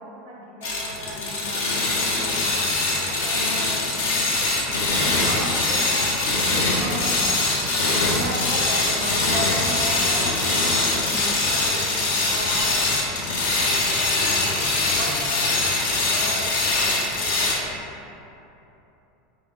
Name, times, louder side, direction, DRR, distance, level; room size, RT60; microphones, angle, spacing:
voice 1, 0.0-2.6 2.9-4.6 5.1-12.5 13.9-17.6, equal, 50° right, -4 dB, 0.6 m, -37 dB
sound 1, 0.6-17.5, left 2 dB, 65° left, 0.7 m, -23 dB
4.2 x 3.0 x 3.1 m, 3.0 s
figure-of-eight pair, 80°, 0 cm